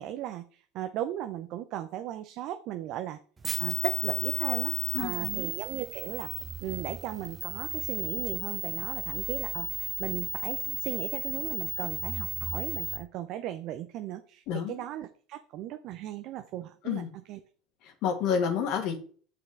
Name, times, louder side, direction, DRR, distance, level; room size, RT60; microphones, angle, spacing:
voice 1, 0.0-3.2 3.6-17.4, right 12 dB, 55° right, 9 dB, 0.6 m, -37 dB
sound 1, 3.4-13.0, right 4 dB, 25° right, 1.0 m, -34 dB
voice 2, 4.9-5.5 14.5-14.8 16.8-17.1 17.8-19.0, left 7 dB, 55° left, 6 dB, 1.7 m, -29 dB
6.3 x 5.9 x 3.4 m, 0.42 s
hypercardioid pair, 75°, 0 cm